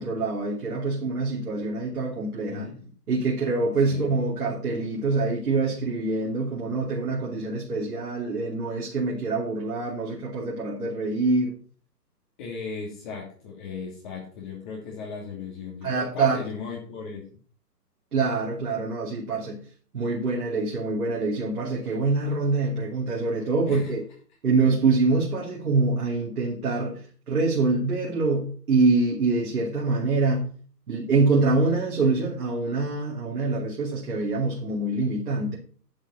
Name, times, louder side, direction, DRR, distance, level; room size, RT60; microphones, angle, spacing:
voice 1, 0.0-2.7 3.1-11.6 15.8-16.4 18.1-19.6 19.9-24.0 24.4-27.0 27.3-30.5 30.9-35.6, right 3 dB, 65° right, 3.1 m, -25 dB
voice 2, 2.5-2.8 3.8-4.0 12.4-17.3 23.7-23.9, left 5 dB, 30° left, 2.9 m, -36 dB
10.5 x 7.7 x 5.8 m
hypercardioid pair, 145°, 49 cm